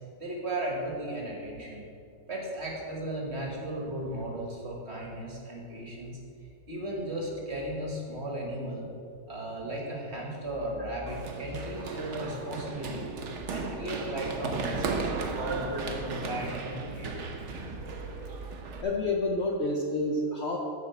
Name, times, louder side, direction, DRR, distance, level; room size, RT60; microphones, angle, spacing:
voice 1, 0.2-1.8 2.3-6.2 6.7-8.9 9.3-13.1 13.5-17.2, right 1 dB, 35° right, -1 dB, 1.7 m, -35 dB
Run, 11.1-18.8, right 3 dB, 65° right, 0.7 m, -35 dB
voice 2, 18.8-20.6, left 2 dB, 85° left, -1 dB, 0.6 m, -28 dB
9.7 x 5.2 x 7.0 m, 2.5 s
omnidirectional pair, 2.3 m